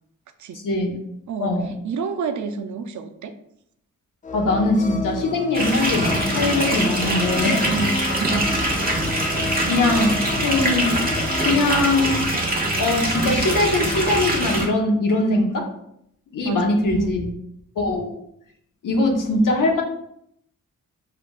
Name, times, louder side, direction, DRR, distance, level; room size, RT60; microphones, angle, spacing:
voice 1, 0.6-1.0 1.4-1.7 4.3-7.7 9.7-11.0 11.4-12.2 12.8-15.7 16.3-17.3 17.8-18.2 18.8-19.8, left 2 dB, 70° left, 1 dB, 1.1 m, -21 dB
voice 2, 1.3-3.3 7.7-8.6 16.4-17.2, right 5 dB, 60° right, 8 dB, 0.5 m, -30 dB
sound 1, 4.2-12.2, left 4 dB, 25° left, 0.4 m, -30 dB
sound 2, 5.5-14.7, right 1 dB, 25° right, 1.1 m, -23 dB
6.6 x 2.5 x 2.4 m, 0.74 s
cardioid pair, 65°, 33 cm